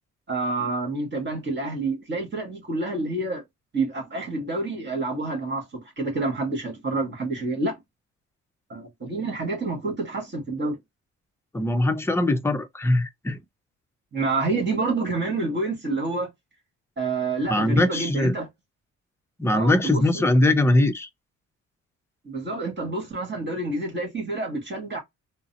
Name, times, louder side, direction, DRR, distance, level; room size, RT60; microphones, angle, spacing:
voice 1, 0.3-3.4 3.7-7.8 8.7-10.8 14.1-16.3 17.0-18.5 19.5-20.2 22.2-25.0, right 3 dB, 35° right, 1.7 m, -28 dB
voice 2, 11.5-13.4 17.5-18.4 19.4-21.1, left 1 dB, 10° left, 0.6 m, -21 dB
3.8 x 2.0 x 2.8 m
cardioid pair, 90°, 30 cm